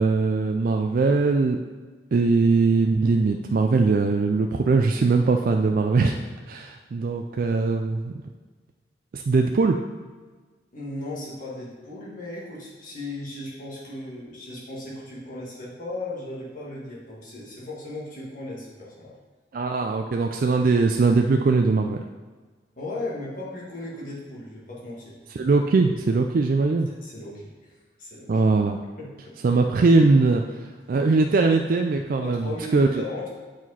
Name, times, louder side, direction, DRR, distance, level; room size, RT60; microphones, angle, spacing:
voice 1, 0.0-1.6 2.1-6.2 6.5-8.1 9.1-9.8 19.5-22.0 25.4-26.9 28.3-28.8 29.4-33.0, right 3 dB, 50° right, 4 dB, 0.3 m, -21 dB
voice 2, 10.7-19.1 22.8-25.2 26.9-27.7 28.0-28.4 29.0-29.4 32.2-33.3, left 2 dB, 45° left, -5 dB, 1.9 m, -36 dB
7.7 x 4.9 x 4.1 m, 1.4 s
head